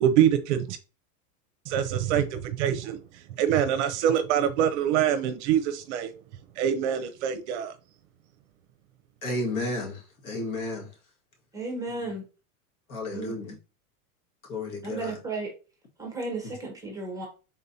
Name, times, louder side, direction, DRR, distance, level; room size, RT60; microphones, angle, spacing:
voice 1, 0.0-0.8 1.7-3.0 3.4-6.1 6.6-7.7, right 9 dB, 50° right, 0.6 m, -24 dB
voice 2, 9.2-10.9 12.0-12.1 12.9-13.5 14.5-15.2, left 2 dB, 70° left, 1.8 m, -32 dB
voice 3, 11.5-12.2 13.1-13.3 14.8-15.5 16.0-17.3, right 3 dB, 10° right, 0.7 m, -34 dB
4.1 x 3.7 x 2.7 m
supercardioid pair, 150°, 45 cm